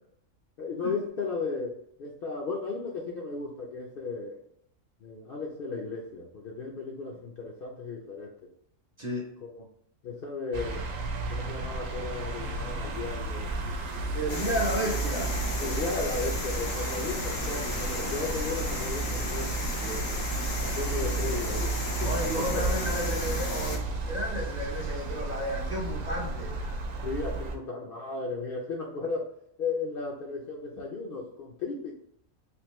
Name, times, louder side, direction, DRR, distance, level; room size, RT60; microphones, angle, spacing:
voice 1, 0.6-4.4 5.0-8.3 9.4-9.6 10.0-10.9 11.3-13.5 14.3-14.4 15.6-19.5 20.6-21.7 22.0-22.6 27.0-29.3 29.6-31.9, left 4 dB, 60° left, -1 dB, 0.6 m, -35 dB
voice 2, 9.0-9.3 14.1-15.3 17.8-18.1 19.8-20.1 22.0-26.8, equal, 40° right, -3 dB, 0.7 m, -33 dB
sound 1, 10.5-27.6, right 2 dB, 80° right, 1.0 m, -33 dB
sound 2, 14.3-23.8, left 2 dB, 90° left, 1.4 m, -35 dB
3.5 x 2.5 x 3.0 m, 0.72 s
omnidirectional pair, 1.3 m